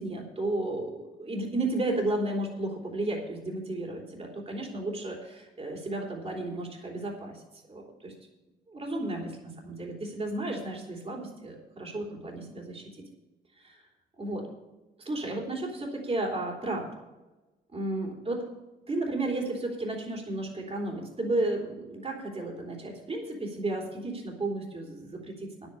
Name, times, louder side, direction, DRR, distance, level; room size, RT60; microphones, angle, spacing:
voice 1, 0.0-7.4 7.7-8.1 8.7-13.0 13.5-13.8 14.2-14.4 15.0-16.9 17.7-18.4 18.9-25.7, right 2 dB, 30° right, 0 dB, 3.2 m, -33 dB
10.0 x 9.0 x 6.6 m, 1.1 s
cardioid pair, 90°, 20 cm